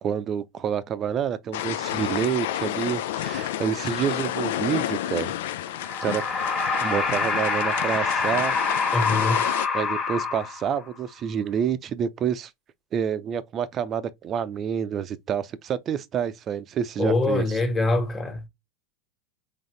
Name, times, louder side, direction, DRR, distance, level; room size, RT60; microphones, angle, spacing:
voice 1, 0.0-5.3 6.0-6.2 6.8-8.6 9.7-12.5 12.9-17.6, right 8 dB, 35° right, 0.6 m, -28 dB
sound 1, 1.5-9.7, left 12 dB, 65° left, 0.4 m, -30 dB
sound 2, 5.8-10.9, left 4 dB, 35° left, 1.6 m, -26 dB
voice 2, 8.9-9.4 17.0-18.4, left 2 dB, 20° left, 1.5 m, -24 dB
3.9 x 3.5 x 3.2 m
figure-of-eight pair, 90°, 0 cm